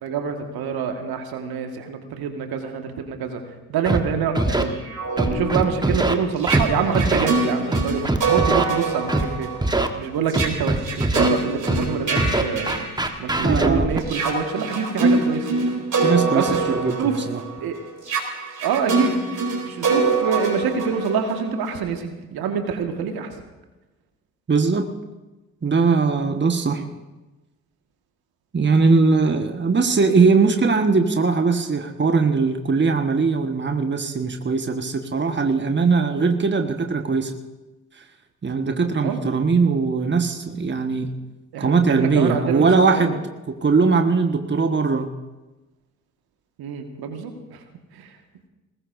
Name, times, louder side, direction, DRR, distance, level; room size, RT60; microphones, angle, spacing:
voice 1, 0.0-3.4 3.7-4.8 5.2-9.5 10.0-12.9 13.2-15.5 16.3-16.6 17.0-17.2 17.6-17.8 18.6-19.2 19.7-23.3 39.0-39.2 41.5-43.2 46.6-47.6 48.0-48.1, right 6 dB, 65° right, 5 dB, 1.9 m, -26 dB
Scratching (performance technique), 3.9-4.0 4.3-4.6 5.2-6.1 6.5-6.6 6.9-7.3 7.7-8.6 9.1-9.2 9.6-9.9 10.3-11.3 11.7-11.8 12.1-14.0, right 2 dB, 10° right, 1.4 m, -21 dB
sound 1, 4.7-13.6 14.0-21.8, right 3 dB, 45° right, 3.8 m, -25 dB
voice 2, 13.4-13.9 16.0-17.4 24.5-24.9 25.6-26.9 28.5-37.3 38.4-41.1 41.6-43.2 43.5-45.1, right 4 dB, 25° right, 6 dB, 1.5 m, -20 dB
22.0 x 20.0 x 2.7 m, 1.1 s
hypercardioid pair, 40°, 40 cm